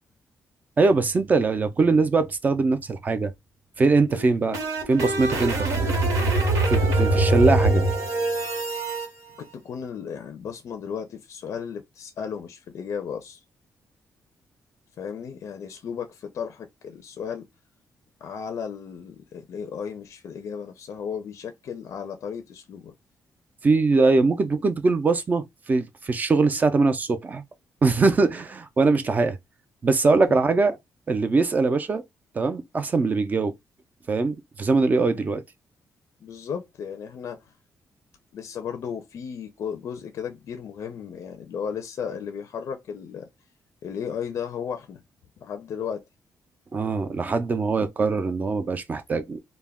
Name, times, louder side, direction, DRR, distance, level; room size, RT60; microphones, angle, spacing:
voice 1, 0.8-3.3 3.8-4.6 4.9-5.7 6.7-7.8 23.6-27.4 27.8-29.4 29.8-30.8 31.1-32.0 32.3-33.5 34.1-35.4 46.7-49.4, right 3 dB, 30° right, 0.4 m, -22 dB
sound 1, 4.1-9.1, right 2 dB, 80° right, 0.9 m, -23 dB
voice 2, 9.4-13.4 15.0-17.4 18.2-22.9 28.8-29.0 30.3-30.4 35.0-35.3 36.2-37.5 38.3-43.3 43.8-45.0 45.4-46.0, left 7 dB, 60° left, 0.4 m, -35 dB
2.2 x 2.1 x 3.4 m
cardioid pair, 140°, 6 cm